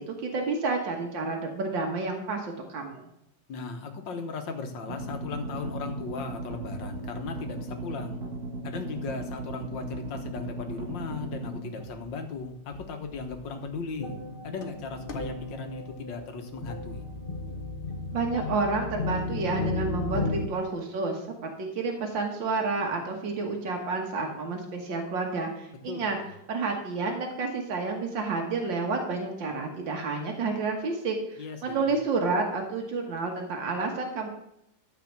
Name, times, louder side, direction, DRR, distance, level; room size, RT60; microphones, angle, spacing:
voice 1, 0.0-3.1 18.1-26.2 26.5-34.3, right 3 dB, 85° right, 2 dB, 2.1 m, -30 dB
voice 2, 3.5-8.2 8.6-14.1 14.4-17.0 25.9-26.3 31.4-31.9, left 4 dB, 85° left, 5 dB, 2.0 m, -37 dB
sound 1, 4.9-11.6, right 2 dB, 60° right, 2.3 m, -37 dB
sound 2, 11.8-12.1 12.7-12.9 13.1-20.5, left 2 dB, 40° left, 0.8 m, -34 dB
12.0 x 5.0 x 7.3 m, 0.79 s
omnidirectional pair, 2.0 m